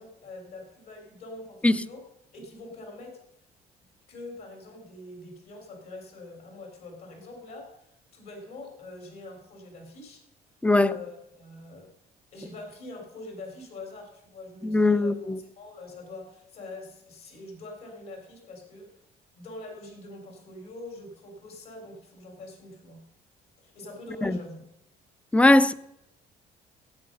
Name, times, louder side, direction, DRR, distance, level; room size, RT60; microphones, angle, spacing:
voice 1, 0.0-2.0 2.3-3.2 4.1-10.2 10.8-11.9 12.3-15.1 15.6-19.0 19.4-23.0 23.6-24.6, left 2 dB, 65° left, 3.8 m, -44 dB
voice 2, 10.6-10.9 14.6-15.4 24.2-24.4 25.3-25.7, left 2 dB, 5° left, 0.5 m, -20 dB
16.5 x 7.7 x 5.4 m
cardioid pair, 110°, 17 cm